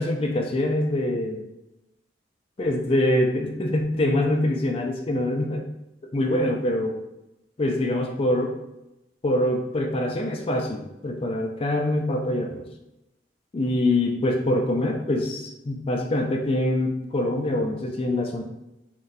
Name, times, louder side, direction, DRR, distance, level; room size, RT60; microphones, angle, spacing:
voice 1, 0.0-1.4 2.6-5.6 6.1-7.0 7.6-8.5 9.2-12.7 13.5-18.4, left 1 dB, 30° left, 2 dB, 0.3 m, -24 dB
2.6 x 2.3 x 3.9 m, 0.92 s
head